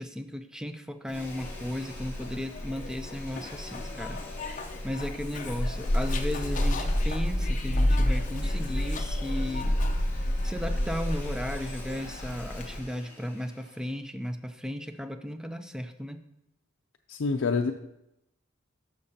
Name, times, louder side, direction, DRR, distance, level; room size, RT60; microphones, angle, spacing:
voice 1, 0.0-4.2 4.8-9.7 10.4-16.2, equal, 5° right, 8 dB, 0.4 m, -35 dB
Zipper (clothing), 1.1-12.8, left 1 dB, 40° left, 0.7 m, -30 dB
Domestic sounds home sounds, 1.1-13.9, left 3 dB, 10° left, 2.0 m, -48 dB
voice 2, 17.1-17.7, left 4 dB, 75° left, 2 dB, 0.5 m, -26 dB
12.0 x 6.5 x 2.8 m, 0.86 s
head